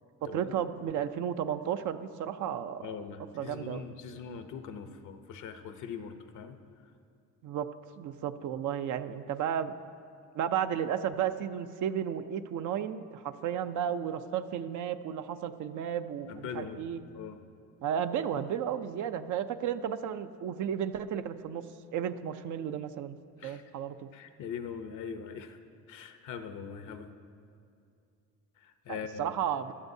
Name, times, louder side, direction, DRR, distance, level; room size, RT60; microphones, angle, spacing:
voice 1, 0.2-2.9 3.3-3.8 7.4-7.7 8.0-9.7 10.3-17.0 17.8-21.6 21.9-23.2 23.4-24.1 28.9-29.7, right 9 dB, 80° right, 9 dB, 0.6 m, -33 dB
voice 2, 2.8-6.6 16.3-17.4 23.4-23.6 24.1-25.6 25.9-27.1 28.6-29.3, left 6 dB, 80° left, 8 dB, 0.8 m, -41 dB
17.0 x 12.0 x 2.7 m, 2.6 s
cardioid pair, 90°, 30 cm